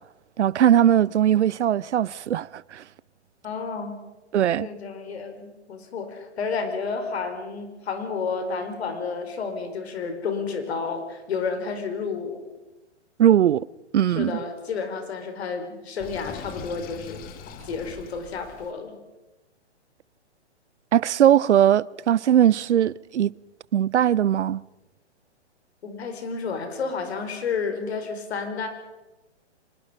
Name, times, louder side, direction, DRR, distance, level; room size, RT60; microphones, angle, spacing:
voice 1, 0.4-2.8 4.3-4.7 13.2-13.7 13.9-14.4 20.9-23.3 23.7-24.6, right 10 dB, 75° right, 0.6 m, -20 dB
voice 2, 3.4-4.0 4.6-12.4 14.1-17.2 17.6-19.0 25.8-28.7, left 5 dB, 65° left, 5.0 m, -31 dB
Sink (filling or washing), 16.0-18.7, left 6 dB, 25° left, 1.8 m, -41 dB
25.0 x 21.0 x 5.3 m
hypercardioid pair, 130°, 35 cm